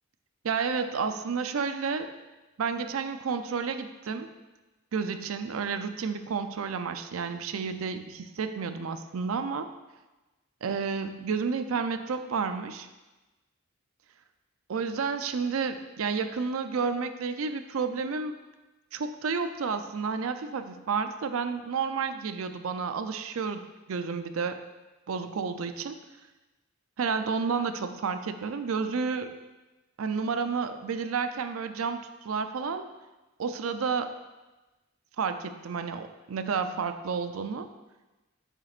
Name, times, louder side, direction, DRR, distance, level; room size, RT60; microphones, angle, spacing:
voice 1, 0.4-2.1 2.6-4.3 4.9-9.7 10.6-12.9 14.7-18.4 18.9-24.6 25.1-26.0 27.0-29.3 30.0-32.9 33.4-34.1 35.2-37.7, right 5 dB, 85° right, 9 dB, 0.5 m, -31 dB
7.7 x 7.3 x 2.5 m, 1.1 s
head